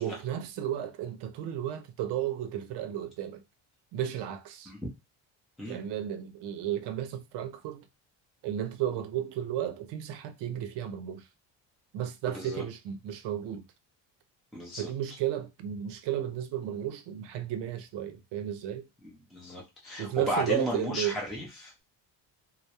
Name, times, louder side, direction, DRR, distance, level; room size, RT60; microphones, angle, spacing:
voice 1, 0.0-3.4 3.9-4.7 5.7-7.8 8.4-11.3 11.9-13.6 14.8-18.9 20.0-21.2, right 11 dB, 65° right, 0.5 m, -33 dB
voice 2, 14.5-14.9 19.3-21.7, left 1 dB, ahead, 0.5 m, -34 dB
2.2 x 2.0 x 2.8 m
cardioid pair, 95°, 45 cm